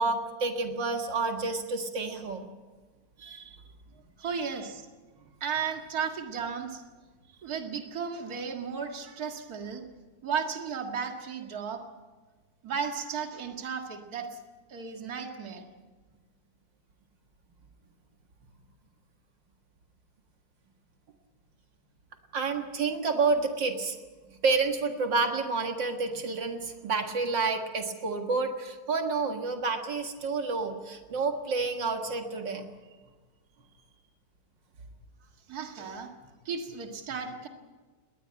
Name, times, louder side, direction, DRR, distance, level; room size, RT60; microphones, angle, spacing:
voice 1, 0.0-2.4 3.2-3.6 4.2-4.5 9.1-9.2 22.3-24.0 24.4-32.7, right 4 dB, 80° right, 4 dB, 2.5 m, -29 dB
voice 2, 4.2-4.9 5.4-6.8 7.4-9.9 10.2-11.8 12.6-14.3 14.7-15.7 35.5-36.1 36.5-37.5, right 6 dB, 55° right, 4 dB, 2.3 m, -34 dB
20.5 x 19.0 x 8.8 m, 1.3 s
omnidirectional pair, 1.9 m